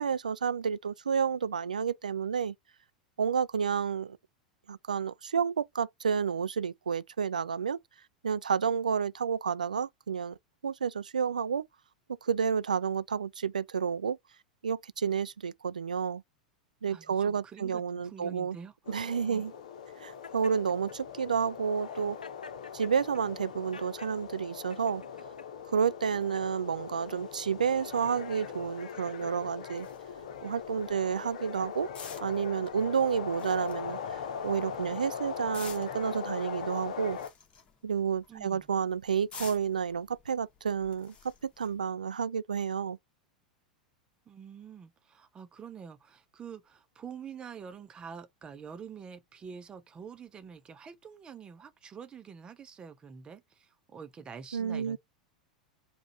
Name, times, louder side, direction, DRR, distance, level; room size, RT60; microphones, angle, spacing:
voice 1, 0.0-2.5 3.2-4.2 4.7-7.8 8.2-10.4 10.6-11.7 12.2-14.2 14.6-16.2 16.8-18.6 18.9-19.5 20.0-22.2 22.7-25.0 25.7-29.9 30.4-31.9 32.2-37.2 37.8-41.1 41.4-43.0 54.5-55.0, right 6 dB, 70° right, 0.4 m, -30 dB
voice 2, 16.9-19.5 38.3-38.7 44.3-55.0, right 6 dB, 20° right, 0.7 m, -47 dB
sound 1, 18.9-37.3, left 7 dB, 60° left, 0.9 m, -41 dB
Laughter, 20.2-21.0 21.8-24.2 24.7-25.5 26.2-26.5 27.2-29.4, left 4 dB, 80° left, 0.4 m, -51 dB
sound 2, 29.7-41.9, left 6 dB, 30° left, 1.7 m, -52 dB
4.9 x 2.5 x 4.2 m
figure-of-eight pair, 90°, 4 cm